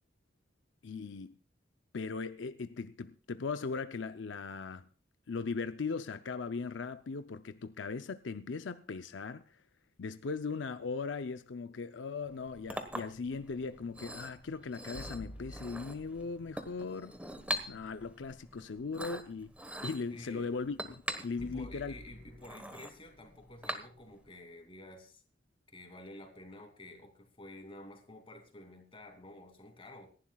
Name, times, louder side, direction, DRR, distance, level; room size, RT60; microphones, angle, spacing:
voice 1, 0.8-1.4 1.9-4.9 5.3-9.4 10.0-17.2 17.7-19.5 19.8-21.9, left 4 dB, 85° left, 0.6 m, -38 dB
Chink clink, 12.3-24.3, equal, 10° right, 1.2 m, -43 dB
sound 1, 14.9-17.1 21.4-24.6, equal, 65° left, 1.3 m, -51 dB
voice 2, 20.1-20.5 21.4-25.2 25.7-30.1, left 1 dB, 30° left, 2.7 m, -51 dB
27.0 x 11.5 x 2.3 m
head